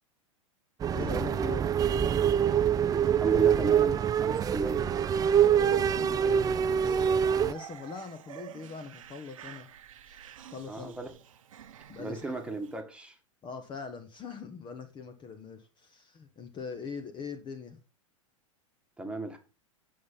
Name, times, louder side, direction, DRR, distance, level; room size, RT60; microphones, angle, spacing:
sound 1, 0.8-7.5, right 8 dB, 20° right, 0.5 m, -25 dB
voice 1, 0.9-1.7 5.7-9.7 10.1-10.2 10.5-10.9 11.9-12.4 13.4-17.8, left 5 dB, 30° left, 1.3 m, -42 dB
voice 2, 3.2-4.9 10.7-11.1 12.0-13.2 19.0-19.4, right 2 dB, 5° right, 1.9 m, -35 dB
Cackling Creepy Laughter, 5.3-12.7, right 9 dB, 75° right, 1.0 m, -45 dB
9.2 x 5.8 x 5.5 m
hypercardioid pair, 100°, 17 cm